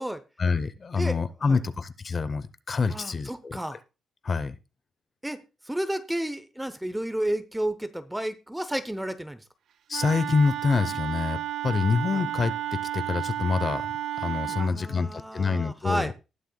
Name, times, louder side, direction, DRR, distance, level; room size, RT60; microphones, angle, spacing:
voice 1, 0.4-3.6 4.2-4.6 9.9-13.8 14.2-16.1, left 4 dB, 30° left, 14 dB, 0.7 m, -26 dB
voice 2, 1.0-1.6 2.9-3.8 5.2-9.4 12.1-12.2 14.6-16.1, right 1 dB, 5° right, 13 dB, 0.7 m, -32 dB
Wind instrument woodwind instrument, 9.9-14.7, right 12 dB, 75° right, 0.5 m, -32 dB
19.0 x 6.6 x 2.3 m, 0.29 s
wide cardioid pair, 165°, 0 cm